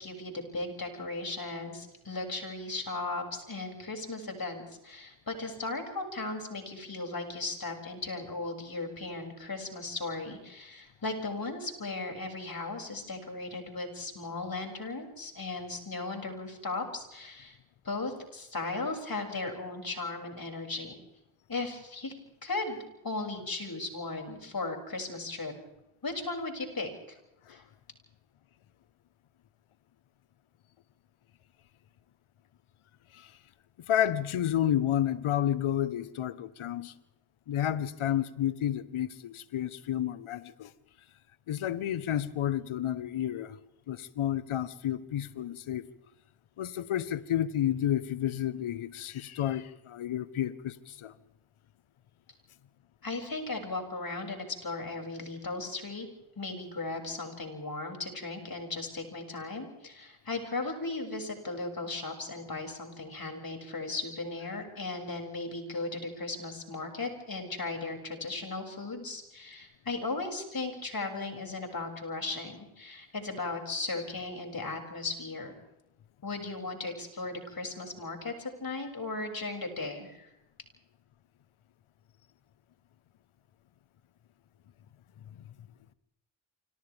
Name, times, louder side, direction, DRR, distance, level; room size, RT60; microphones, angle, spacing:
voice 1, 0.0-17.6 17.8-21.0 21.5-22.1 22.4-22.8 23.0-25.5 26.0-27.2 27.5-27.6 53.0-56.1 56.4-75.5 76.2-80.3, left 3 dB, 45° left, 6.9 m, -36 dB
voice 2, 33.9-36.9 37.5-40.7 41.5-43.6 43.9-45.9 46.6-51.1, left 11 dB, 80° left, 1.3 m, -31 dB
29.5 x 26.0 x 3.6 m
supercardioid pair, 40°, 49 cm